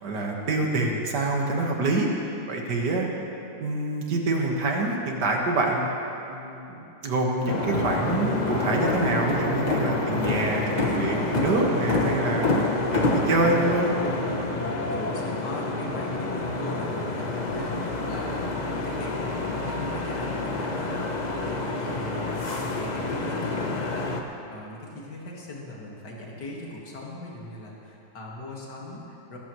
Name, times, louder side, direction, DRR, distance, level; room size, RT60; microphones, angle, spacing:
voice 1, 0.0-2.1 2.5-3.1 3.6-5.9 6.3-12.5 12.9-13.9, right 2 dB, 70° right, 0 dB, 2.2 m, -26 dB
sound 1, 7.5-24.2, left 2 dB, 35° left, 0.7 m, -28 dB
voice 2, 14.5-18.5 18.7-29.4, left 2 dB, 70° left, -3 dB, 2.6 m, -39 dB
21.0 x 13.5 x 3.2 m, 2.9 s
omnidirectional pair, 1.9 m